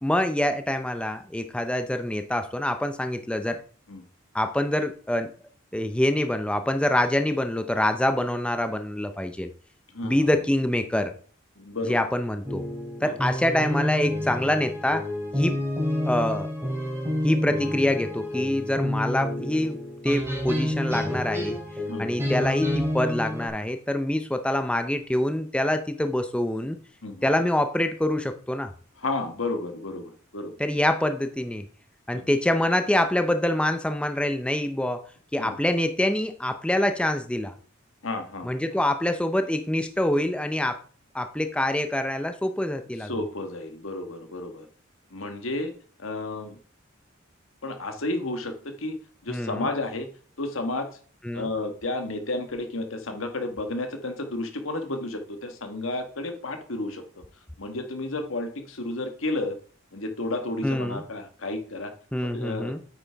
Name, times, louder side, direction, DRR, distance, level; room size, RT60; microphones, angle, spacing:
voice 1, 0.0-3.6 4.3-5.3 5.7-9.5 10.0-11.1 11.9-12.6 13.0-15.0 15.4-15.6 16.0-16.5 17.2-19.8 20.0-21.6 22.0-26.8 27.2-28.7 30.6-31.7 32.1-35.0 35.3-37.5 38.4-40.8 41.1-43.1 49.3-49.7 51.2-51.5 60.6-61.0 62.1-62.8, left 1 dB, 5° left, 8 dB, 0.5 m, -25 dB
voice 2, 9.9-10.3 11.6-12.0 13.0-13.1 15.4-15.5 21.9-22.2 27.0-27.3 29.0-30.5 32.1-32.2 35.4-35.6 38.0-38.5 43.0-44.7 45.1-45.7 46.0-46.6 47.6-48.9 49.2-50.1 50.4-50.9 51.3-57.2 57.6-59.6 59.9-61.9 62.2-62.7, left 2 dB, 80° left, 6 dB, 1.4 m, -32 dB
sound 1, 12.4-23.5, left 1 dB, 15° right, 3.6 m, -29 dB
9.0 x 8.6 x 3.4 m, 0.43 s
head